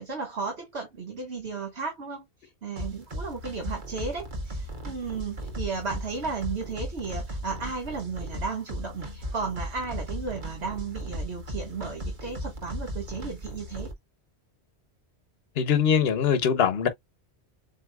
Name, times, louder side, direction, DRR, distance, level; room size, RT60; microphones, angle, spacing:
voice 1, 0.0-13.9, right 4 dB, 70° right, 2.0 m, -34 dB
sound 1, 2.8-13.9, equal, 45° right, 1.5 m, -36 dB
voice 2, 15.6-16.9, left 7 dB, 65° left, 1.1 m, -22 dB
7.5 x 2.7 x 2.3 m
omnidirectional pair, 1.1 m